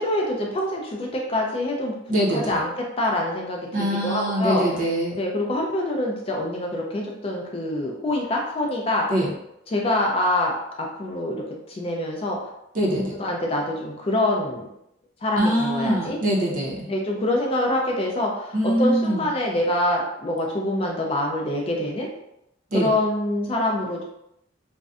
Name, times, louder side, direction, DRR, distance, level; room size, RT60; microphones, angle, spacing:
voice 1, 0.0-1.9 2.3-4.8 5.2-9.1 9.7-11.4 11.7-12.4 12.8-14.7 15.2-16.2 16.9-22.1 22.7-24.0, left 1 dB, 30° left, -1 dB, 0.3 m, -25 dB
voice 2, 2.1-2.6 3.7-5.2 9.1-9.3 12.7-13.2 15.4-16.8 18.5-19.2 22.7-22.9, right 1 dB, 45° right, -4 dB, 0.6 m, -23 dB
2.5 x 2.1 x 2.4 m, 0.82 s
head